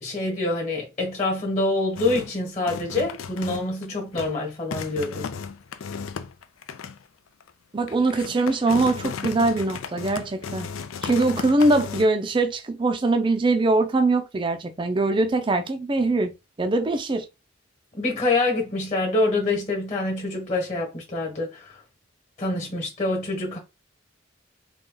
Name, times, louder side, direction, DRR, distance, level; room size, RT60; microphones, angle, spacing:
voice 1, 0.0-5.3 17.9-21.8 22.4-23.6, left 2 dB, 30° left, 1.2 m, -26 dB
sound 1, 2.0-2.4 2.7-3.9 4.1-4.4 4.7-7.0 7.4-7.5 7.9-12.1, left 6 dB, 90° left, 0.4 m, -35 dB
voice 2, 7.7-10.7 11.0-16.3 16.6-17.3, right 2 dB, 25° right, 0.4 m, -22 dB
3.9 x 2.3 x 3.7 m
head